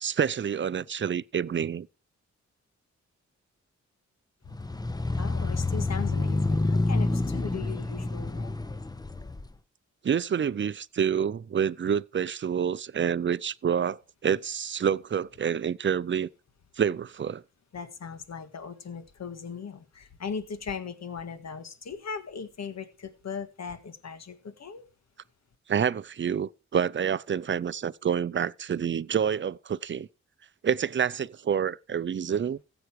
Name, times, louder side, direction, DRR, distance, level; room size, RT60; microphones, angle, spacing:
voice 1, 0.0-1.9 10.0-16.3 16.8-17.4 25.7-30.1 30.6-32.6, right 8 dB, 40° right, 0.5 m, -28 dB
sound 1, 4.5-9.5, left 2 dB, 15° left, 0.7 m, -28 dB
voice 2, 5.2-8.6 17.7-24.8, left 6 dB, 65° left, 1.6 m, -38 dB
14.5 x 8.1 x 4.7 m
cardioid pair, 75°, 29 cm